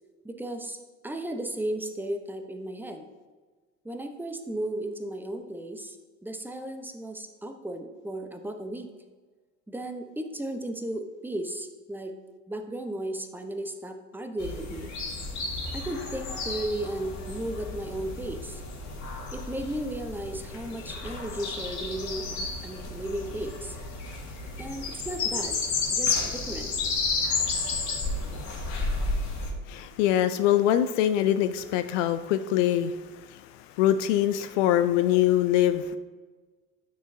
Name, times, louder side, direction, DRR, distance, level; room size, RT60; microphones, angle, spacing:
voice 1, 0.2-0.8 1.0-3.0 3.8-6.0 6.2-8.9 9.7-12.1 12.5-14.9 15.7-18.6 19.3-23.8 24.6-25.6 25.9-26.7, right 1 dB, 5° right, 5 dB, 0.8 m, -35 dB
sound 1, 14.4-29.5, left 4 dB, 45° left, 1.7 m, -32 dB
voice 2, 29.7-36.0, left 11 dB, 65° left, 11 dB, 0.5 m, -24 dB
9.4 x 6.4 x 2.7 m, 1.4 s
figure-of-eight pair, 65°, 40 cm